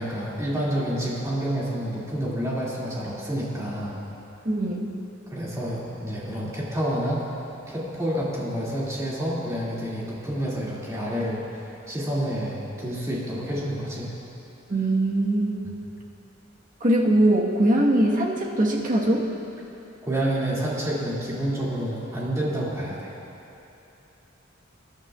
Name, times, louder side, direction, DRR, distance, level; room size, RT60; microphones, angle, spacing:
voice 1, 0.0-4.0 5.3-7.2 7.7-14.1 15.6-15.7 20.0-23.1, right 1 dB, 15° right, -7 dB, 2.5 m, -28 dB
voice 2, 4.4-4.9 14.7-15.7 16.8-19.3, right 1 dB, 45° right, -2 dB, 1.4 m, -21 dB
22.0 x 11.0 x 2.4 m, 2.9 s
head